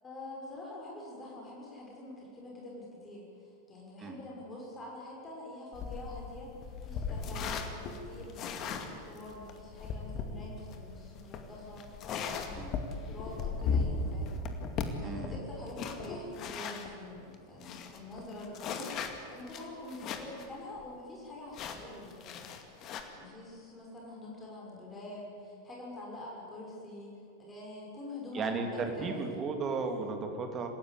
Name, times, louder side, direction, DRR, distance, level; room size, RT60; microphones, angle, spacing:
voice 1, 0.0-12.7 13.0-14.3 14.9-22.5 22.8-29.1, left 2 dB, 20° left, -3 dB, 5.9 m, -46 dB
sound 1, 5.7-16.9 17.3-17.4 17.6-20.5 20.8-20.9 21.5-23.0, left 5 dB, 35° left, 2.3 m, -37 dB
voice 2, 15.0-15.4 28.3-30.7, right 4 dB, 25° right, 4 dB, 3.2 m, -35 dB
27.5 x 16.0 x 8.6 m, 2.7 s
figure-of-eight pair, 90°, 0 cm